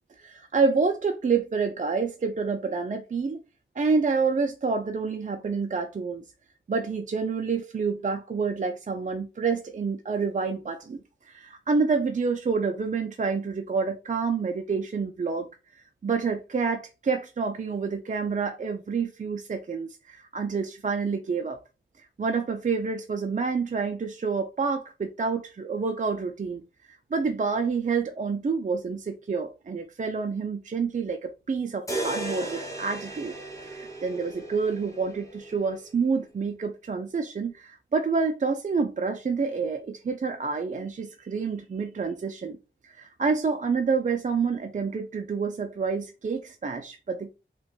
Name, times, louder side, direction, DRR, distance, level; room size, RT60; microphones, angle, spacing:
voice 1, 0.2-3.4 3.8-6.2 6.7-11.0 11.3-15.5 15.8-21.6 22.0-26.6 27.1-33.3 33.6-42.6 42.8-47.3, right 5 dB, 40° right, 0.4 m, -28 dB
sound 1, 31.9-35.9, right 2 dB, 15° left, 1.0 m, -36 dB
5.7 x 2.3 x 2.3 m
cardioid pair, 50°, 20 cm